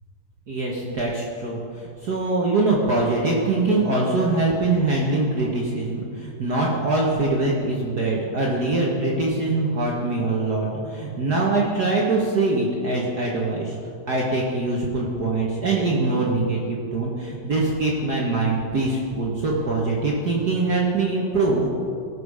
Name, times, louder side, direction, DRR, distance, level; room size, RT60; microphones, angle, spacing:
voice 1, 0.5-13.7 14.1-21.7, right 2 dB, 90° right, -3 dB, 0.8 m, -23 dB
19.0 x 6.4 x 4.9 m, 2.4 s
omnidirectional pair, 3.7 m